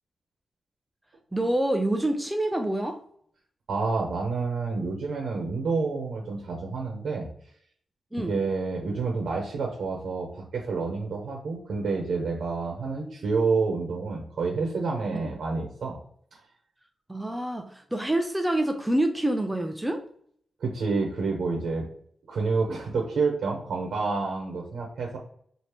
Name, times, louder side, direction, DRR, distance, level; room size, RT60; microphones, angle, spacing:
voice 1, 1.3-3.0 8.1-8.4 12.9-13.2 15.1-15.3 17.1-20.0, right 1 dB, 10° right, 5 dB, 0.4 m, -27 dB
voice 2, 3.7-7.3 8.3-16.0 20.6-21.9 22.3-25.2, right 4 dB, 75° right, 1 dB, 0.9 m, -28 dB
4.9 x 2.8 x 2.9 m, 0.62 s
wide cardioid pair, 160°, 0 cm